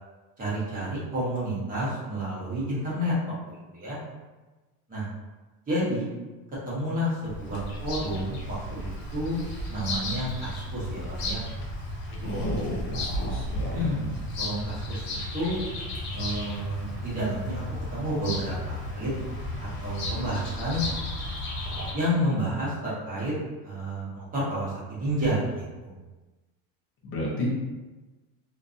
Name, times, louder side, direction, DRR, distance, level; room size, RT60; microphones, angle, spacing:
voice 1, 0.4-4.0 4.9-5.1 5.7-6.1 6.7-9.4 9.7-11.4 12.1-12.6 13.7-14.1 14.4-15.5 16.1-17.6 17.9-19.1 19.6-20.8 21.9-23.3 23.6-26.0, equal, 20° right, -9 dB, 0.9 m, -30 dB
Bird vocalization bird call bird song, 7.2-21.9, left 1 dB, 65° left, 1.0 m, -34 dB
voice 2, 12.2-13.8 16.9-17.0 27.0-27.5, left 1 dB, 30° left, -3 dB, 0.5 m, -32 dB
2.6 x 2.2 x 2.5 m, 1.2 s
cardioid pair, 160°, 40 cm